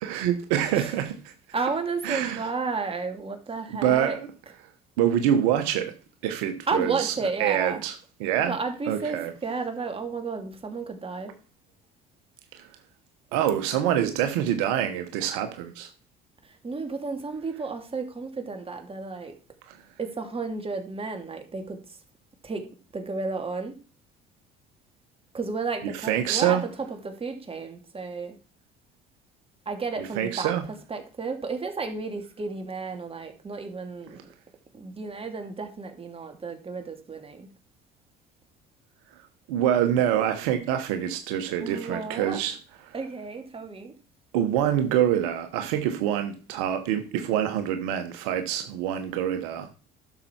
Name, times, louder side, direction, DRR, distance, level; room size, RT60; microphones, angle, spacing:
voice 1, 0.0-1.3 2.0-2.5 3.7-4.3 5.0-5.9 6.2-7.1 7.4-7.9 8.2-8.6 8.9-9.3 12.5-12.6 13.3-15.9 25.8-26.6 30.0-30.7 39.5-42.6 42.8-42.9 44.3-49.7, right 10 dB, 80° right, 1.3 m, -26 dB
voice 2, 1.5-4.2 6.7-7.8 8.5-11.3 16.6-19.3 20.0-21.8 22.4-22.7 22.9-23.7 25.3-26.6 26.9-28.4 29.7-30.5 30.9-34.3 34.7-37.5 41.6-42.4 42.9-43.9, right 4 dB, 25° right, 2.6 m, -32 dB
11.5 x 6.8 x 4.5 m
hypercardioid pair, 70°, 21 cm